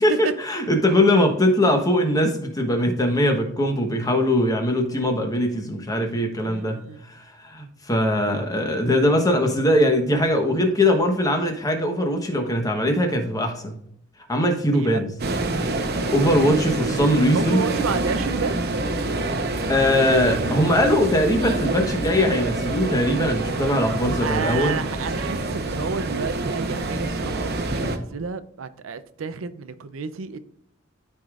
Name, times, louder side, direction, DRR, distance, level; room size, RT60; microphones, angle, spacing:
voice 1, 0.0-6.8 7.4-13.7 14.3-15.1 16.1-17.6 19.7-24.7, left 1 dB, 20° left, 1.1 m, -21 dB
voice 2, 0.8-1.2 6.4-7.0 14.7-15.0 17.3-18.7 23.6-23.7 24.2-30.4, right 5 dB, 90° right, 0.5 m, -31 dB
sound 1, 15.2-28.0, right 2 dB, 55° right, 0.8 m, -26 dB
13.0 x 4.9 x 2.4 m
head